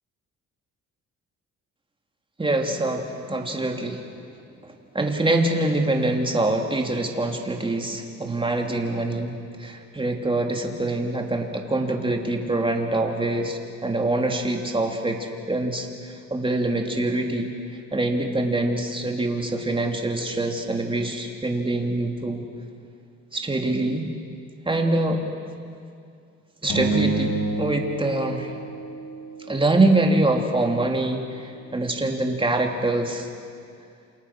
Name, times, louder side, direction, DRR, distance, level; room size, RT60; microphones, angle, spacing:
voice 1, 2.4-4.1 4.6-15.2 15.5-17.5 17.9-22.5 23.3-24.1 24.7-25.2 26.6-28.5 29.5-33.3, right 2 dB, 15° right, 2 dB, 3.6 m, -24 dB
sound 1, 26.7-29.3, right 3 dB, 70° left, 6.1 m, -27 dB
28.5 x 27.5 x 6.6 m, 2.3 s
cardioid pair, 90°, 30 cm